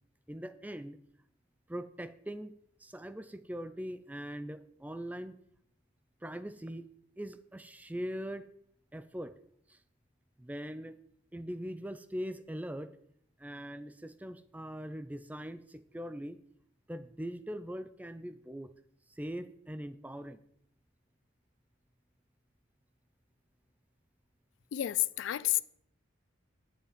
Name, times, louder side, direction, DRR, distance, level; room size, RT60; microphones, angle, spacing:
voice 1, 0.3-1.0 1.7-2.5 2.8-5.4 6.2-6.8 7.2-8.5 8.9-9.4 9.7-9.8 10.4-11.0 11.3-13.0 13.4-16.4 16.9-18.7 19.1-20.4, equal, 10° right, 0.4 m, -41 dB
voice 2, 24.7-25.6, left 14 dB, 75° left, 0.4 m, -30 dB
10.5 x 7.2 x 5.1 m
head